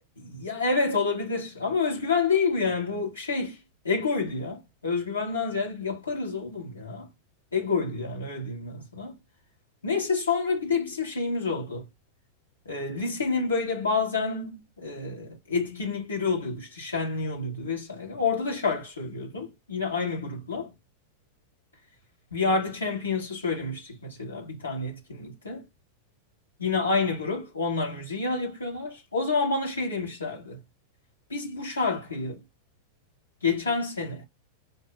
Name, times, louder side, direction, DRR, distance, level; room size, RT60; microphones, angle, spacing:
voice 1, 0.2-3.6 3.8-7.1 7.5-9.1 9.8-11.9 12.7-20.7 22.3-25.6 26.6-30.6 31.3-32.4 33.4-34.2, left 4 dB, 75° left, 0.9 m, -28 dB
5.2 x 2.1 x 2.2 m
figure-of-eight pair, 90°, 0 cm